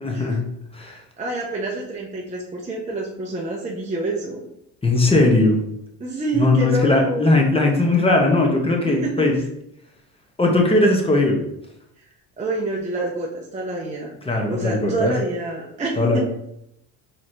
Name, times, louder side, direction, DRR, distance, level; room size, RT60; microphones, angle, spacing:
voice 1, 0.0-0.5 0.7-1.0 4.8-5.6 6.4-9.4 10.4-11.4 14.3-15.1 16.0-16.2, left 2 dB, 15° left, 1 dB, 0.8 m, -18 dB
voice 2, 1.2-4.4 6.0-7.3 9.0-9.3 12.4-14.1 14.5-16.2, right 2 dB, 15° right, -3 dB, 0.6 m, -27 dB
4.0 x 3.1 x 2.6 m, 0.78 s
supercardioid pair, 100°, 44 cm